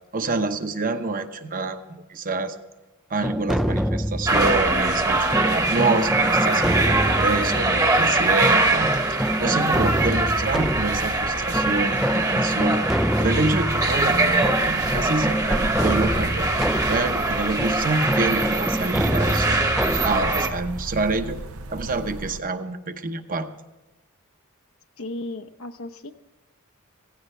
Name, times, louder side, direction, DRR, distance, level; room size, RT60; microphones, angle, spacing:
voice 1, 0.1-2.6 3.1-16.5 16.9-19.6 20.0-21.4 21.7-23.5, right 3 dB, 40° right, 8 dB, 1.0 m, -27 dB
sound 1, 3.2-21.9, equal, ahead, 0.4 m, -27 dB
sound 2, 4.3-20.5, right 2 dB, 15° right, 1.1 m, -23 dB
sound 3, 13.7-22.4, right 4 dB, 75° right, 0.7 m, -37 dB
voice 2, 25.0-26.1, left 2 dB, 70° left, 6 dB, 0.9 m, -35 dB
16.5 x 16.0 x 3.3 m, 1.1 s
head